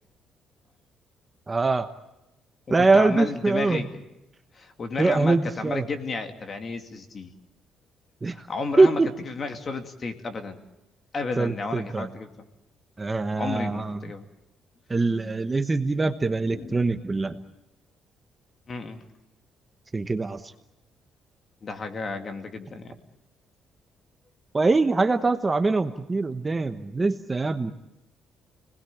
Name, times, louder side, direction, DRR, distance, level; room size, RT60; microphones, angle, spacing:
voice 1, 1.5-1.9 2.7-3.9 5.0-5.8 8.2-8.4 8.8-9.1 11.4-12.1 13.0-14.0 14.9-17.4 19.9-20.5 24.5-27.7, right 3 dB, 20° right, 8 dB, 1.1 m, -23 dB
voice 2, 2.7-4.0 4.5-7.3 8.3-9.0 9.3-10.6 11.1-12.3 13.4-14.3 16.4-16.8 18.7-19.0 21.6-23.0, left 3 dB, 35° left, 6 dB, 2.5 m, -33 dB
29.5 x 20.0 x 8.6 m, 0.94 s
cardioid pair, 135°, 0 cm